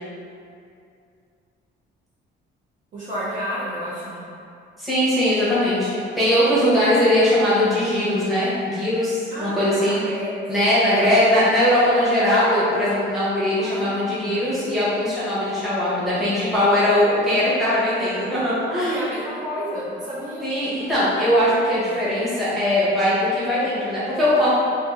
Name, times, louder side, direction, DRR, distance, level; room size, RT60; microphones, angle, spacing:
voice 1, 2.9-4.2 9.3-11.2 13.6-14.5 18.6-20.5, equal, 40° right, -9 dB, 0.6 m, -31 dB
voice 2, 4.8-10.0 10.5-19.0 20.4-24.5, left 1 dB, ahead, -12 dB, 0.8 m, -20 dB
2.6 x 2.5 x 3.6 m, 2.5 s
cardioid pair, 180°, 20 cm